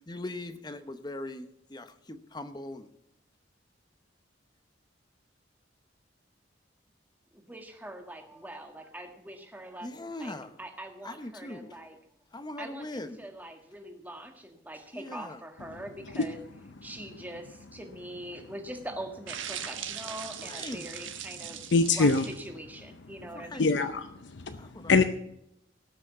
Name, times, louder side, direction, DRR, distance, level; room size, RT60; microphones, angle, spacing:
voice 1, 0.1-2.9 9.8-10.5 11.0-11.7 12.3-13.2 14.9-15.4 20.4-20.9 23.3-23.8 24.6-25.0, left 1 dB, 20° left, 10 dB, 0.8 m, -40 dB
voice 2, 7.3-9.9 10.2-12.0 12.6-16.4 16.8-23.7, right 1 dB, 10° right, 4 dB, 1.6 m, -43 dB
sound 1, 19.3-22.5, right 9 dB, 90° right, 1.4 m, -40 dB
voice 3, 21.7-22.3 23.6-24.6 24.9-25.0, left 3 dB, 70° left, 9 dB, 0.7 m, -23 dB
18.0 x 6.3 x 7.2 m, 0.78 s
head